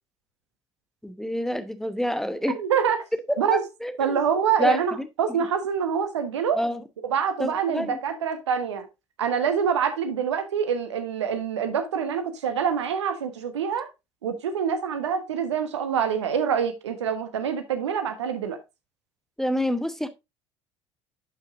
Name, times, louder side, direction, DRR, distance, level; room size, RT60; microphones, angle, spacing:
voice 1, 1.0-2.6 3.3-4.2 4.6-5.4 6.5-6.8 7.4-8.0 19.4-20.1, equal, 5° left, 1.0 m, -28 dB
voice 2, 2.5-3.0 3.4-3.6 4.0-6.6 7.1-8.9 9.2-13.9 14.2-18.6, right 7 dB, 75° right, 1.2 m, -26 dB
11.5 x 5.6 x 2.5 m
figure-of-eight pair, 60°, 15 cm